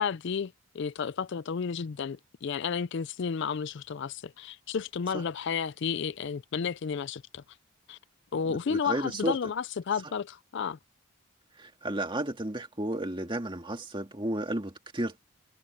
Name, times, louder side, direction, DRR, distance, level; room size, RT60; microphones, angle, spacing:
voice 1, 0.0-7.4 7.9-8.0 8.3-10.8, left 6 dB, 55° left, 0.4 m, -32 dB
voice 2, 8.5-9.4 11.6-15.2, right 1 dB, 20° right, 2.0 m, -33 dB
head